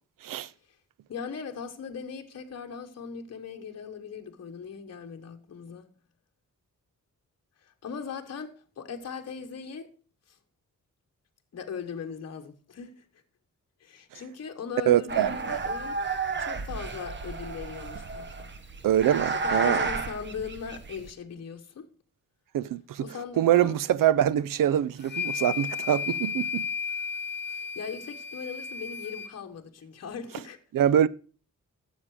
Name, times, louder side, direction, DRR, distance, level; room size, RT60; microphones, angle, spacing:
voice 1, 1.1-5.9 7.6-9.9 11.5-13.0 13.8-16.0 16.4-18.5 19.3-21.9 23.0-23.8 27.5-30.6, left 6 dB, 50° left, 1.2 m, -39 dB
voice 2, 14.9-15.6 18.8-19.9 22.5-23.1 23.4-26.7 30.7-31.1, right 10 dB, 80° right, 0.5 m, -24 dB
sound 1, 15.1-21.1, right 4 dB, 35° right, 1.0 m, -32 dB
sound 2, 25.0-29.3, left 7 dB, 35° left, 0.6 m, -34 dB
12.5 x 7.4 x 4.8 m
wide cardioid pair, 160°, 33 cm